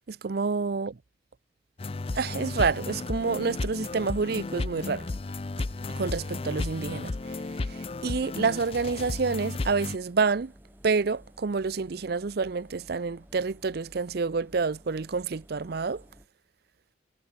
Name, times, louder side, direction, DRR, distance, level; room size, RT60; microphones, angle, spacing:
voice 1, 0.1-0.9 2.1-5.1 5.9-7.1 7.7-10.5 10.8-16.0, right 4 dB, 55° right, 0.5 m, -28 dB
sound 1, 1.8-10.0, left 3 dB, 30° left, 0.5 m, -34 dB
Engine, 2.3-16.3, equal, 10° right, 1.9 m, -54 dB
head